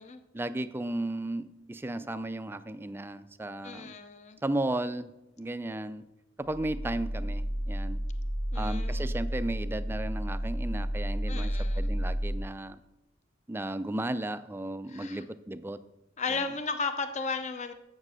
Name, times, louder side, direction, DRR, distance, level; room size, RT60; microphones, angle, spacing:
voice 1, 0.3-3.9 4.4-5.1 5.4-6.0 6.4-8.0 8.6-12.8 13.5-15.8 16.3-16.5, right 1 dB, 10° right, 12 dB, 0.3 m, -34 dB
voice 2, 3.6-4.4 8.5-9.1 11.3-11.9 14.9-15.2 16.2-17.7, left 4 dB, 35° left, 9 dB, 0.6 m, -35 dB
sound 1, 6.4-12.4, equal, 90° left, 1.5 m, -31 dB
7.4 x 7.4 x 6.3 m, 0.94 s
head